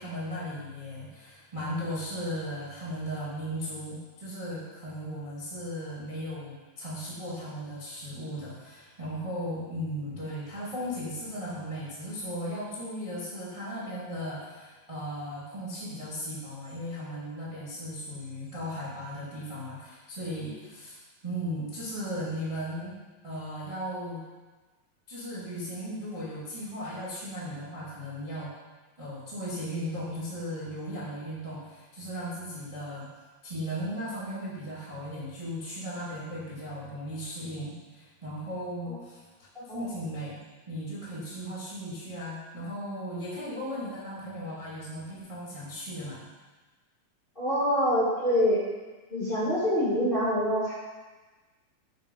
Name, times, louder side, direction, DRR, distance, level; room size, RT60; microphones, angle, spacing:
voice 1, 0.0-21.0 21.2-22.9 23.2-24.2 25.1-28.5 29.0-33.1 33.4-39.2 39.5-40.4 40.7-46.2, equal, 45° right, -8 dB, 0.4 m, -36 dB
voice 2, 47.3-48.6 49.1-50.7, equal, 65° left, -10 dB, 0.5 m, -25 dB
8.1 x 4.6 x 5.2 m, 1.3 s
omnidirectional pair, 4.5 m